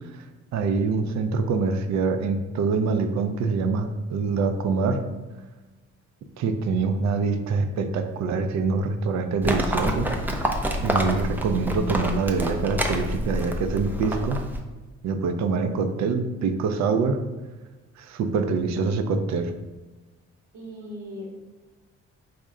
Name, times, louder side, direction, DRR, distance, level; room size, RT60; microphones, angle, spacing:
voice 1, 0.5-5.0 6.4-10.1 10.8-14.4 15.0-17.2 18.0-19.5, right 4 dB, 65° right, 8 dB, 0.4 m, -25 dB
Livestock farm animals working animals, 9.4-14.6, equal, 5° right, 0.3 m, -27 dB
voice 2, 18.7-19.0 20.5-21.3, left 1 dB, 85° right, -6 dB, 1.0 m, -39 dB
3.6 x 2.1 x 3.6 m, 1.2 s
cardioid pair, 90°, 30 cm